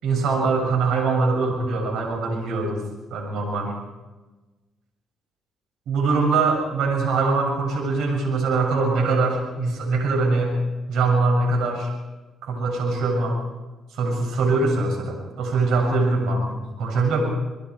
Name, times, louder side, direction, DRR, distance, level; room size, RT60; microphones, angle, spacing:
voice 1, 0.0-2.8 3.1-3.7 5.9-10.6 10.9-11.9 12.4-13.4 13.9-17.2, right 3 dB, 80° right, 1 dB, 7.2 m, -22 dB
28.0 x 22.0 x 4.8 m, 1.2 s
cardioid pair, 90°, 0 cm